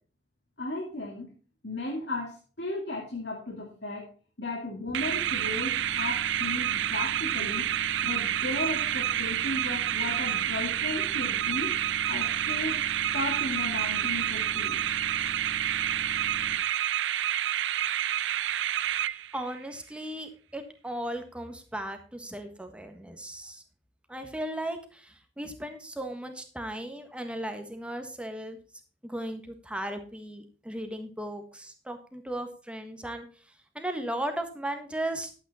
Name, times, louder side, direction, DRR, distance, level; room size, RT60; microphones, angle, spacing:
voice 1, 0.6-1.3 1.6-4.1 4.4-7.7 8.0-11.7 12.1-12.8 13.1-14.8, left 2 dB, 65° left, -1 dB, 2.6 m, -35 dB
sound 1, 4.9-16.5, equal, 20° left, 1.8 m, -45 dB
sound 2, 4.9-19.6, right 11 dB, 80° right, 0.4 m, -29 dB
voice 2, 18.2-23.6 24.1-28.6 29.0-33.3 33.7-35.3, right 1 dB, 5° right, 6 dB, 1.5 m, -36 dB
11.0 x 8.8 x 4.2 m, 0.38 s
head